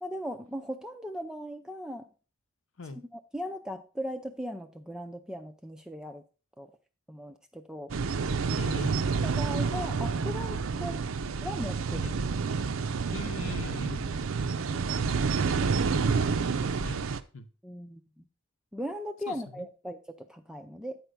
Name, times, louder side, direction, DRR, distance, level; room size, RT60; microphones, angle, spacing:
voice 1, 0.0-2.1 3.1-6.2 6.6-6.7 7.1-7.9 9.2-11.0 11.4-12.1 17.6-18.2 18.7-21.0, equal, 5° right, 6 dB, 0.4 m, -38 dB
sound 1, 7.9-17.2, right 5 dB, 70° right, 0.5 m, -29 dB
voice 2, 8.6-9.0 12.0-12.1 13.1-14.1 16.8-17.1 17.3-17.5 19.3-19.7, left 3 dB, 65° left, 11 dB, 0.8 m, -39 dB
9.0 x 4.5 x 5.2 m, 0.36 s
head